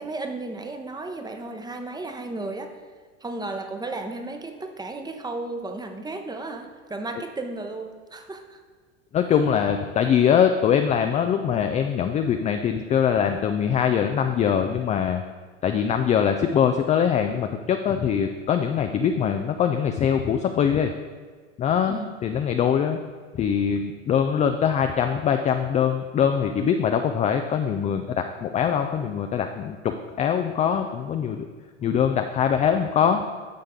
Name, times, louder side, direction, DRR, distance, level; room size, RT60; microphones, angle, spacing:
voice 1, 0.0-2.8 3.2-8.6 21.9-22.2, right 2 dB, 10° right, 5 dB, 0.9 m, -34 dB
voice 2, 9.1-15.2 15.6-20.9 21.6-23.0 23.3-31.5 31.8-33.2, left 8 dB, 20° left, 6 dB, 0.4 m, -23 dB
10.5 x 6.5 x 3.7 m, 1.5 s
hypercardioid pair, 90°, 38 cm